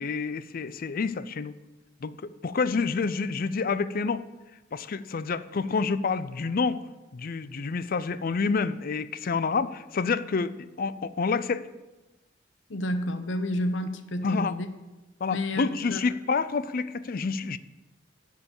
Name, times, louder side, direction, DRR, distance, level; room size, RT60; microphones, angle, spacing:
voice 1, 0.0-1.5 2.0-4.2 4.7-6.8 7.1-11.6 14.2-14.5 15.2-17.6, left 4 dB, 50° left, 15 dB, 0.5 m, -28 dB
voice 2, 12.7-14.7 15.3-15.6 15.9-16.0, left 1 dB, 70° left, 9 dB, 0.8 m, -30 dB
12.5 x 4.7 x 8.6 m, 1.1 s
head